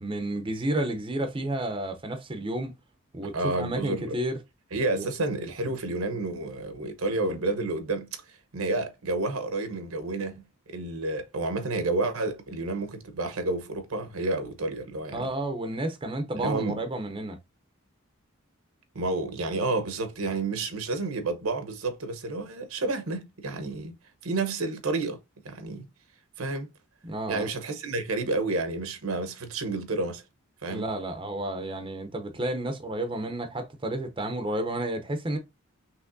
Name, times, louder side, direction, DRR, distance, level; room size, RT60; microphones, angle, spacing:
voice 1, 0.0-2.7 3.1-4.4 4.9-5.1 15.1-17.4 27.0-27.5 30.7-35.4, right 1 dB, 25° right, 0.6 m, -31 dB
voice 2, 3.3-4.2 4.7-8.1 8.5-15.2 16.4-16.8 18.9-23.9 24.2-25.2 25.4-25.9 26.4-26.7 27.3-30.2 30.6-30.9, right 2 dB, 85° right, 1.0 m, -30 dB
5.8 x 3.1 x 2.6 m
head